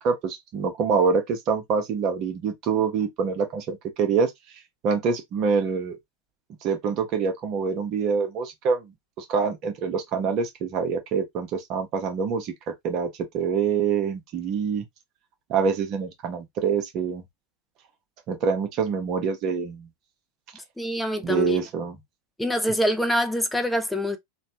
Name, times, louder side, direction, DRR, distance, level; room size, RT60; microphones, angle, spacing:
voice 1, 0.0-4.3 4.8-6.0 6.6-12.5 12.8-13.1 13.3-14.8 15.5-17.2 18.3-19.9 21.2-22.0, right 5 dB, 35° right, 1.0 m, -25 dB
voice 2, 20.8-21.6 22.4-24.2, equal, 5° left, 0.6 m, -25 dB
3.1 x 2.3 x 2.8 m
figure-of-eight pair, 90°, 0 cm